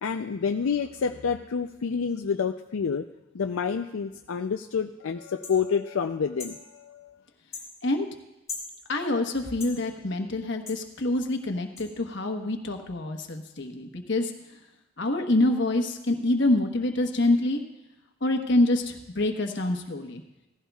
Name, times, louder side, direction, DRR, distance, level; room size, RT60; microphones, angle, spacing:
voice 1, 0.0-3.0 3.3-7.2, left 6 dB, 80° left, 6 dB, 0.5 m, -28 dB
sound 1, 5.4-5.6 6.4-6.6 7.5-7.7 8.5-8.7 9.6-9.8 10.7-10.8 11.8-11.9, left 4 dB, 15° left, 3.6 m, -38 dB
voice 2, 8.9-14.3 15.0-17.6 18.2-20.2, left 2 dB, 60° left, 5 dB, 1.2 m, -26 dB
16.0 x 15.5 x 2.4 m, 0.98 s
head